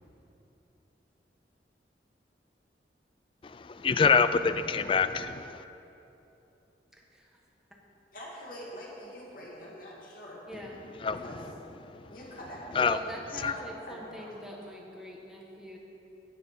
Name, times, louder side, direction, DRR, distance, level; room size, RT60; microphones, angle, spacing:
voice 1, 3.6-5.5 11.0-11.2 12.8-13.0 13.4-13.5, left 5 dB, 30° left, 12 dB, 0.3 m, -25 dB
voice 2, 8.1-10.4 11.1-11.5 12.1-13.0 13.4-13.6 13.9-14.3, equal, 50° left, -4 dB, 2.5 m, -44 dB
voice 3, 12.8-15.8, equal, 5° right, -3 dB, 1.2 m, -43 dB
11.0 x 9.0 x 5.4 m, 3.0 s
head